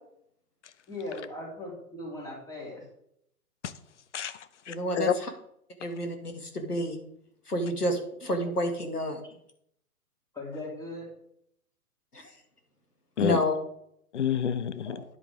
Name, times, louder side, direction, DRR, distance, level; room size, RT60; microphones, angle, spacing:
voice 1, 0.9-2.8 10.3-11.1 14.8-15.0, left 2 dB, 10° left, -3 dB, 3.1 m, -38 dB
voice 2, 4.1-5.1 13.2-13.4 14.1-15.0, left 9 dB, 50° left, 14 dB, 0.9 m, -29 dB
voice 3, 4.7-5.1 5.8-7.0 7.5-9.2 12.1-12.3 13.2-13.6, equal, 85° left, 5 dB, 2.3 m, -29 dB
10.0 x 8.3 x 3.6 m, 0.71 s
figure-of-eight pair, 125°, 45 cm